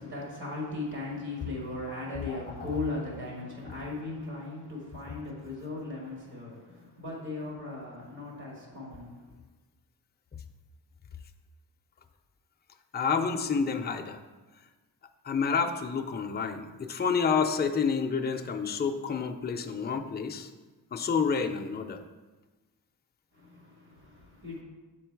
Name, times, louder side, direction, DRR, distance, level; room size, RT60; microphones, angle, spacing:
voice 1, 0.0-9.2 23.3-24.6, left 2 dB, 60° right, -3 dB, 1.9 m, -38 dB
voice 2, 12.9-14.2 15.2-20.5 20.9-22.0, left 5 dB, 25° left, 5 dB, 0.4 m, -29 dB
7.4 x 4.5 x 4.6 m, 1.2 s
wide cardioid pair, 155°, 41 cm